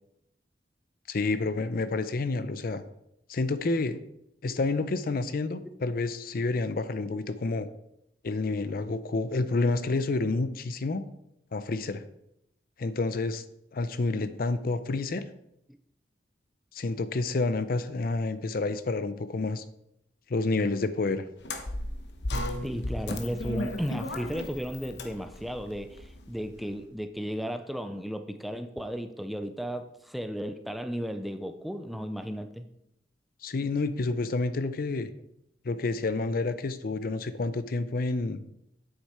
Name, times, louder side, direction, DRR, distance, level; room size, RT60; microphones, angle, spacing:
voice 1, 1.1-2.8 3.3-4.0 4.4-7.7 8.2-11.0 11.5-12.0 12.8-13.4 13.7-15.2 16.7-19.6 20.3-21.2 33.4-35.1 35.6-38.4, left 3 dB, 55° left, 13 dB, 0.5 m, -29 dB
sound 1, 21.4-26.7, left 1 dB, 75° left, 1.0 m, -35 dB
voice 2, 22.6-32.7 37.3-37.4, equal, ahead, 8 dB, 0.4 m, -34 dB
8.1 x 6.5 x 4.3 m, 0.79 s
head